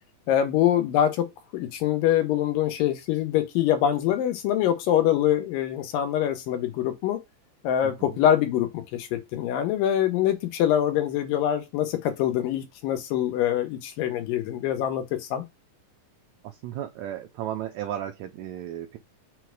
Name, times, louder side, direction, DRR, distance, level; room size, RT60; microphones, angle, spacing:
voice 1, 0.3-1.3 1.5-7.2 7.6-15.4, left 11 dB, 85° left, 2.5 m, -24 dB
voice 2, 7.8-8.2 16.4-19.0, right 11 dB, 90° right, 1.6 m, -35 dB
5.6 x 2.1 x 4.5 m
omnidirectional pair, 3.8 m